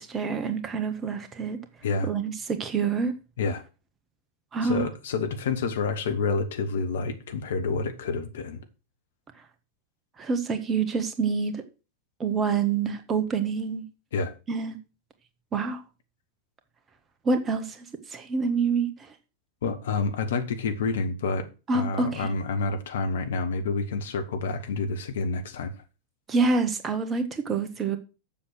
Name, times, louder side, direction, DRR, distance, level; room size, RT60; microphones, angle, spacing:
voice 1, 0.0-1.6 2.0-3.1 4.5-4.9 10.2-11.6 12.2-13.8 14.5-14.8 15.5-15.8 17.3-18.9 21.7-22.3 26.3-28.0, right 4 dB, 20° right, 1.6 m, -27 dB
voice 2, 4.6-8.6 14.1-14.3 19.6-25.7, left 4 dB, 60° left, 1.4 m, -28 dB
7.6 x 7.2 x 6.4 m
figure-of-eight pair, 90°, 0 cm